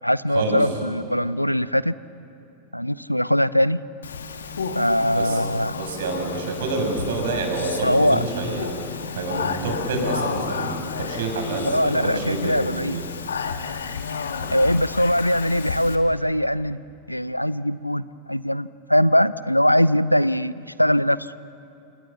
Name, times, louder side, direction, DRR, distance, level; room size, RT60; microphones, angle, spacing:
voice 1, 0.0-1.9 2.7-3.8 4.7-5.8 7.8-8.2 11.7-13.0 14.5-16.8 17.1-21.2, equal, 90° left, 19 dB, 0.5 m, -21 dB
Speech, 4.0-16.0, left 5 dB, 70° left, 1.7 m, -32 dB
voice 2, 5.8-8.7 9.1-13.0, right 3 dB, 60° right, 3 dB, 6.4 m, -27 dB
29.0 x 27.5 x 7.1 m, 2.7 s
figure-of-eight pair, 90°, 0 cm